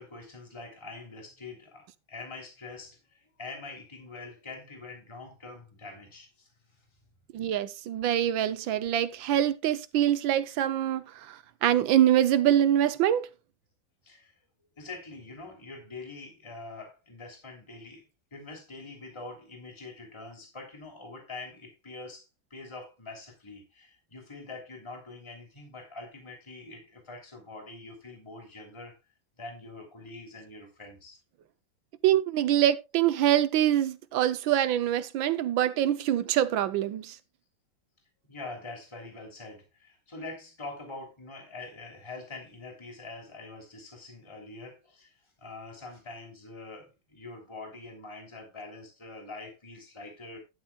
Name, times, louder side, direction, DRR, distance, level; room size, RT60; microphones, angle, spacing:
voice 1, 0.0-6.5 6.8-6.9 14.0-14.3 14.8-18.0 18.3-29.0 29.4-31.2 38.3-50.4, left 3 dB, 15° left, 3.1 m, -44 dB
voice 2, 7.3-13.3 32.0-37.2, right 11 dB, 80° right, 1.4 m, -25 dB
12.0 x 11.5 x 2.3 m
omnidirectional pair, 2.2 m